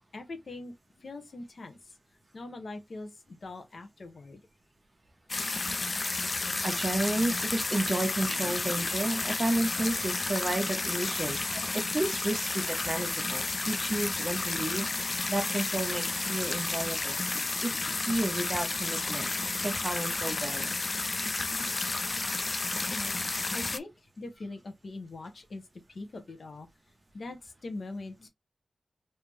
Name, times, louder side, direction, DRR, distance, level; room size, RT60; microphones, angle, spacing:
voice 1, 0.1-1.8 2.3-4.4 22.9-23.1 23.5-25.6 25.9-26.7 27.1-28.3, left 2 dB, 60° left, 0.9 m, -42 dB
sound 1, 5.3-23.8, left 3 dB, 35° left, 0.3 m, -31 dB
voice 2, 6.6-14.9 15.3-17.2 17.6-17.7 18.1-20.7, right 2 dB, 35° right, 1.0 m, -32 dB
3.4 x 2.8 x 3.2 m
wide cardioid pair, 105°, 0 cm